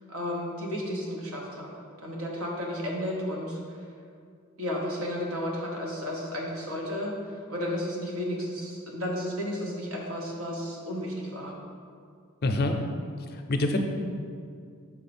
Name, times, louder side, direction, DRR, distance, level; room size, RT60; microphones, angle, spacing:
voice 1, 0.1-1.7 2.0-3.8 4.6-11.6, left 1 dB, 80° right, -1 dB, 1.1 m, -33 dB
voice 2, 12.4-12.8 13.3-13.8, left 2 dB, 45° left, 4 dB, 0.5 m, -25 dB
6.3 x 4.4 x 4.2 m, 2.3 s
head